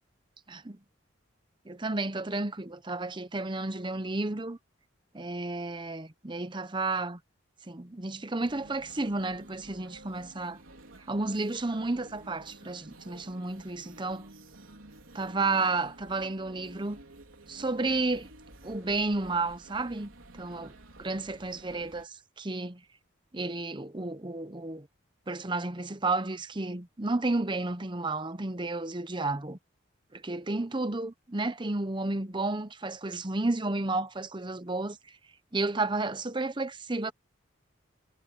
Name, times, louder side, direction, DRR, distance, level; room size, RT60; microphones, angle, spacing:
voice 1, 1.7-4.6 5.1-7.2 7.7-10.6 11.1-14.3 15.1-17.0 17.5-18.3 18.6-20.1 20.4-20.7 21.0-22.8 23.3-24.9 25.3-29.6 30.1-35.0 35.5-37.1, right 2 dB, 25° right, 0.9 m, -32 dB
sound 1, 8.4-22.0, right 2 dB, 90° right, 4.3 m, -52 dB
head